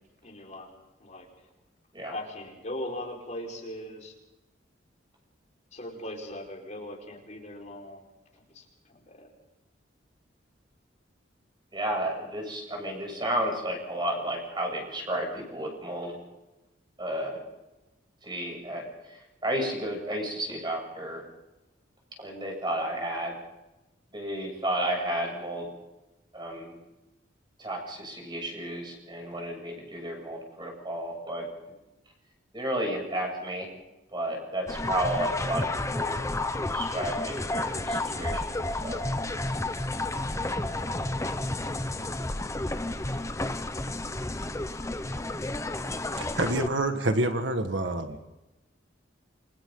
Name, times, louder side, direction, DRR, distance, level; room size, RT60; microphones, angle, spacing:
voice 1, 0.2-0.7 1.0-1.3 2.1-4.1 5.7-8.0 8.5-9.3, left 1 dB, 40° left, 0 dB, 5.1 m, -39 dB
voice 2, 11.7-16.1 17.0-17.4 18.2-21.2 22.2-23.4 24.1-25.7 26.3-26.7 27.6-31.5 32.5-33.7 34.1-36.2 36.5-38.4 38.7-39.0, right 1 dB, 25° right, 1 dB, 7.7 m, -32 dB
sound 1, 34.7-46.7, left 2 dB, 15° left, 1.0 m, -31 dB
voice 3, 46.2-48.2, right 1 dB, 70° right, 6 dB, 1.8 m, -27 dB
29.0 x 25.5 x 4.0 m, 1.0 s
head